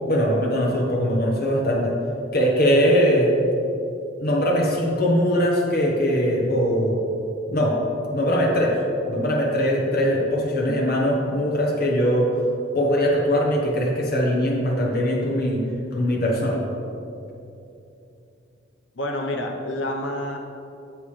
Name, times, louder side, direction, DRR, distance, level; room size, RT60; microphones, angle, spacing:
voice 1, 0.1-1.9 2.3-3.3 4.2-7.0 7.5-7.7 8.1-8.8 9.0-12.3 12.7-15.6 15.9-16.6, equal, 55° left, -2 dB, 1.2 m, -21 dB
voice 2, 19.0-20.4, left 1 dB, 85° left, 1 dB, 0.9 m, -28 dB
9.2 x 8.0 x 3.3 m, 2.7 s
head